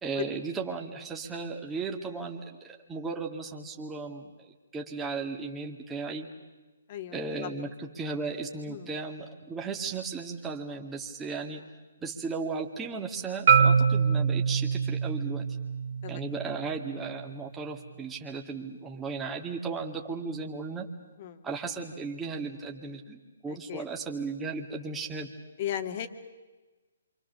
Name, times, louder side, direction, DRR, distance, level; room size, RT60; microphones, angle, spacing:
voice 1, 0.0-4.5 4.7-6.3 7.1-11.6 12.0-15.4 16.1-20.9 21.4-25.3, right 4 dB, 10° right, 1 dB, 2.1 m, -36 dB
voice 2, 6.9-7.5 8.7-8.9 16.0-16.2 21.2-21.5 23.5-23.9 25.6-26.1, left 10 dB, 40° left, 8 dB, 2.0 m, -36 dB
Marimba xylophone, 13.5-17.6, right 6 dB, 50° right, 2.1 m, -25 dB
28.0 x 25.5 x 6.7 m, 1.2 s
figure-of-eight pair, 140°, 0 cm